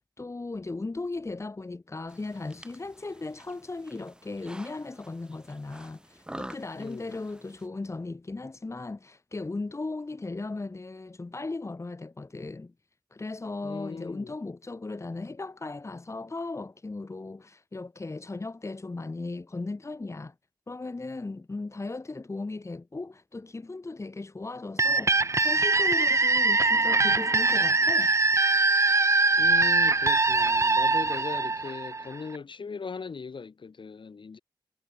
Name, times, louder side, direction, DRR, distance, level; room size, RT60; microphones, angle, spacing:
voice 1, 0.2-12.7 13.1-20.3 20.7-28.1, left 3 dB, 35° left, 1.3 m, -37 dB
sound 1, 2.1-7.7, right 1 dB, 10° right, 2.4 m, -47 dB
voice 2, 6.7-7.2 13.6-14.3 29.4-34.4, left 5 dB, 80° left, 6.5 m, -39 dB
sound 2, 24.8-32.4, right 3 dB, 35° right, 0.7 m, -23 dB
wide cardioid pair, 85°, 8 cm